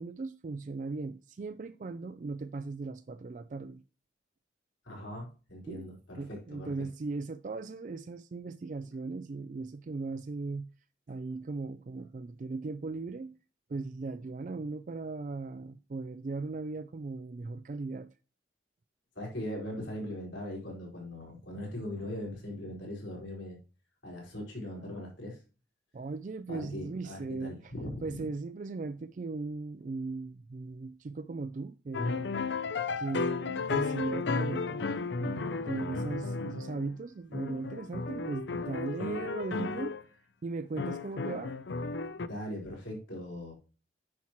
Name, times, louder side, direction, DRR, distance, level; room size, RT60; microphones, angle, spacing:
voice 1, 0.0-3.8 5.7-5.9 6.2-10.7 11.1-13.3 13.7-18.1 25.9-27.7 28.0-32.4 33.0-40.0 40.4-41.6, right 3 dB, 40° right, 0.3 m, -38 dB
voice 2, 4.8-6.7 19.1-23.6 24.0-25.4 26.5-28.2 42.2-43.5, left 1 dB, 85° left, 4.5 m, -40 dB
sound 1, 31.9-37.0 37.3-40.0 40.8-42.3, left 4 dB, 65° left, 0.5 m, -34 dB
9.5 x 5.9 x 3.0 m
head